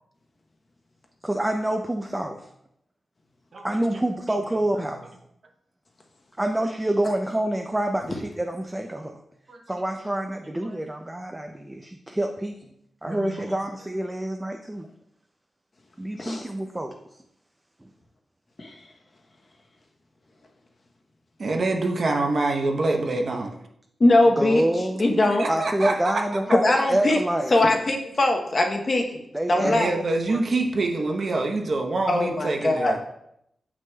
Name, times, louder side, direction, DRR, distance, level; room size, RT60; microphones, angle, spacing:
voice 1, 1.2-2.5 3.6-5.0 6.4-9.2 9.7-12.5 13.0-14.9 16.0-17.0 24.4-25.1 25.5-27.5 29.3-30.0 30.3-30.4, right 1 dB, 10° right, 4 dB, 0.4 m, -27 dB
voice 2, 13.0-13.5 21.4-23.5 25.2-26.2 29.6-33.0, right 2 dB, 45° right, 2 dB, 0.8 m, -26 dB
voice 3, 24.0-24.6 25.0-25.5 26.5-27.2 27.5-29.0 29.5-29.9 32.1-33.1, left 2 dB, 35° left, 2 dB, 0.8 m, -21 dB
7.7 x 6.1 x 2.3 m, 0.76 s
wide cardioid pair, 135°, 0 cm